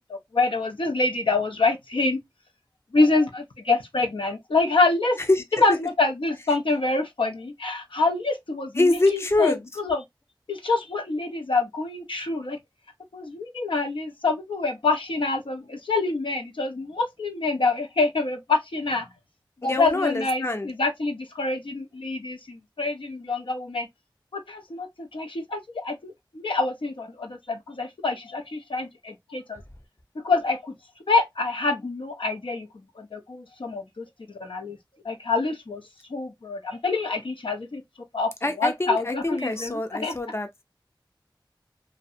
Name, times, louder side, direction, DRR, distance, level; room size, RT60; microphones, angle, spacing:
voice 1, 0.1-2.2 2.9-5.2 5.6-10.0 10.5-12.6 13.1-19.1 19.6-23.9 24.3-29.6 30.2-30.7 31.1-32.7 33.0-34.8 35.0-35.8 36.1-37.8 38.1-38.3 38.6-40.1, left 3 dB, 85° left, 0.5 m, -26 dB
voice 2, 8.8-9.6 19.6-20.7 38.4-40.5, left 2 dB, 30° left, 0.5 m, -24 dB
2.4 x 2.1 x 2.6 m
wide cardioid pair, 50°, 8 cm